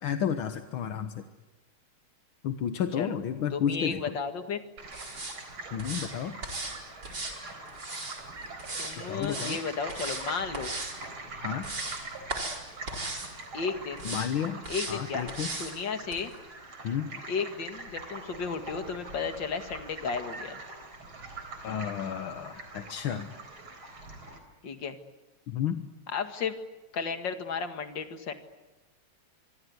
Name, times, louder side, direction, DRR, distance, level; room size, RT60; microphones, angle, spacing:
voice 1, 0.0-1.2 2.4-4.2 5.7-6.4 9.1-9.6 11.4-11.7 14.1-14.6 14.9-15.5 16.8-17.1 21.6-23.3 25.5-25.8, left 8 dB, 80° left, 8 dB, 1.9 m, -31 dB
voice 2, 3.5-4.6 8.8-10.7 13.5-14.1 14.7-15.3 15.6-16.3 17.3-20.6 24.6-25.0 26.1-26.6 26.9-28.4, left 5 dB, 60° left, 7 dB, 2.6 m, -33 dB
sound 1, 4.8-24.4, right 3 dB, 90° right, 5.0 m, -43 dB
sound 2, 4.9-5.4 5.8-6.1 6.4-6.8 7.0-8.2 8.6-8.9 9.2-9.6 9.9-10.2 10.5-10.9 11.3-12.0 12.3-12.6 12.9-13.3 14.0-14.3 14.6-14.9 15.3-15.7 16.1-16.2, right 2 dB, 55° right, 5.2 m, -36 dB
25.0 x 24.0 x 9.6 m, 1.1 s
omnidirectional pair, 2.2 m